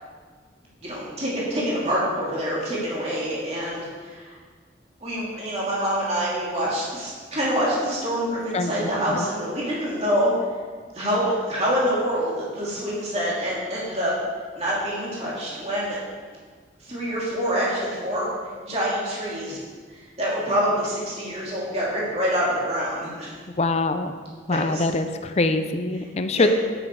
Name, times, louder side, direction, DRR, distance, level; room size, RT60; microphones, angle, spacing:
voice 1, 0.8-4.3 5.0-10.3 10.9-14.1 14.6-16.0 16.8-18.3 18.6-19.6 20.2-23.3 24.5-24.8 26.4-26.5, equal, 35° right, -6 dB, 2.9 m, -26 dB
voice 2, 8.5-9.2 23.6-24.1 24.5-26.5, left 2 dB, 35° left, 9 dB, 0.6 m, -24 dB
10.0 x 9.6 x 4.8 m, 1.5 s
head